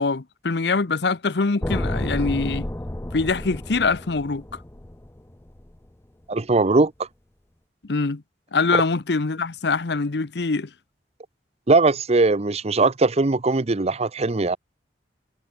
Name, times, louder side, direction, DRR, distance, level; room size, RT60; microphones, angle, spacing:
voice 1, 0.0-2.7 3.1-4.4 7.9-8.2 8.5-10.7, left 4 dB, 70° left, 0.8 m, -23 dB
sound 1, 1.6-5.8, left 1 dB, 15° left, 0.7 m, -30 dB
voice 2, 6.3-6.9 11.7-14.6, right 3 dB, 35° right, 0.8 m, -20 dB
head